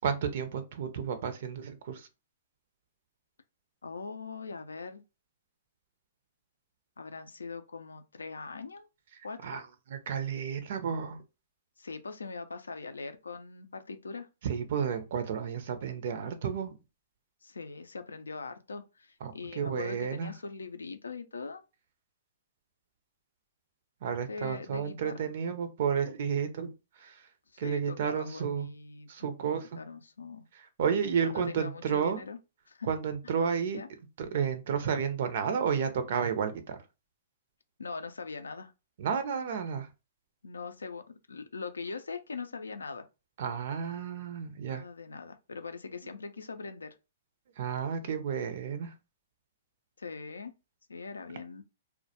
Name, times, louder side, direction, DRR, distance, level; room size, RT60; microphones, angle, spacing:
voice 1, 0.0-2.1 9.4-9.6 10.1-11.2 14.4-16.7 19.2-20.3 24.0-26.7 27.0-27.2 27.6-28.7 29.1-29.8 30.8-32.2 32.9-33.8 34.2-36.8 39.0-39.9 43.4-44.8 47.6-48.9, right 7 dB, 60° right, 0.4 m, -31 dB
voice 2, 3.8-5.0 7.0-8.9 9.2-9.6 11.8-14.3 17.4-21.6 24.3-25.3 27.5-30.5 31.2-32.4 32.7-32.9 33.2-33.4 33.7-33.9 37.8-38.7 40.4-43.1 44.6-46.9 50.0-50.5 50.9-51.6, left 4 dB, 85° left, 0.4 m, -41 dB
2.2 x 2.1 x 2.7 m
hypercardioid pair, 120°, 0 cm